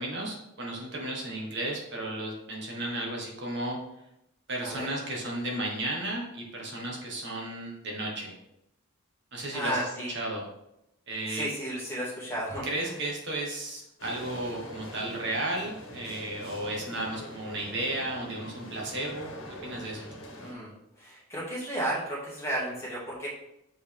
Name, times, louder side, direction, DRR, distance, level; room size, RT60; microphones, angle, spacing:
voice 1, 0.0-3.8 4.5-8.4 9.3-10.4 11.1-11.5 12.6-19.3 19.6-20.1, right 1 dB, 55° right, -2 dB, 1.6 m, -34 dB
voice 2, 9.5-10.1 11.3-12.7 20.4-20.7 21.0-23.3, right 1 dB, 10° left, -7 dB, 2.3 m, -33 dB
sound 1, 14.0-20.5, left 1 dB, 65° left, 1.5 m, -43 dB
6.3 x 5.2 x 3.6 m, 0.84 s
head